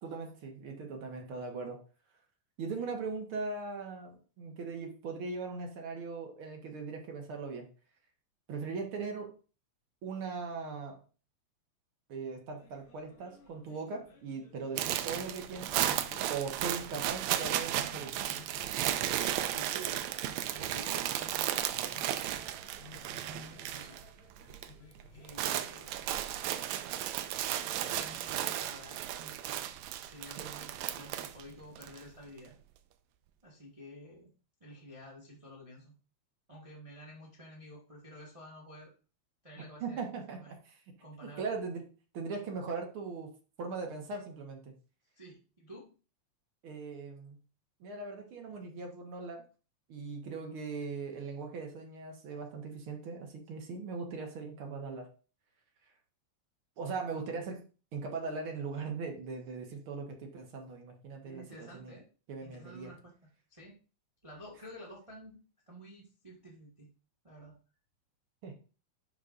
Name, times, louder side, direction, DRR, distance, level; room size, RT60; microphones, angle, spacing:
voice 1, 0.0-1.8 2.6-7.7 8.5-9.3 10.0-11.0 12.1-15.9 16.3-18.2 30.4-30.5 39.8-40.6 41.2-41.8 42.1-43.3 43.6-44.7 46.6-47.4 47.8-49.4 49.9-55.1 56.8-57.6 57.9-62.0 62.3-62.9 68.4-68.6, right 4 dB, 55° right, 2 dB, 1.8 m, -39 dB
sound 1, 12.6-26.0, left 4 dB, 80° left, 2.8 m, -58 dB
sound 2, 14.8-24.1 24.3-24.7 25.0-32.0, right 12 dB, 80° right, 1.8 m, -34 dB
voice 2, 19.4-20.1 20.5-22.0 23.2-24.0 25.1-26.1 27.6-29.6 30.0-32.5 33.4-34.3 34.6-35.9 36.5-38.9 39.4-40.0 40.3-40.5 41.0-41.5 45.1-45.9 61.2-62.1 62.4-63.1 63.5-63.8 64.2-65.4 65.7-66.9 67.2-67.5, equal, 20° right, -2 dB, 1.0 m, -51 dB
11.0 x 5.6 x 2.5 m, 0.35 s
omnidirectional pair, 3.3 m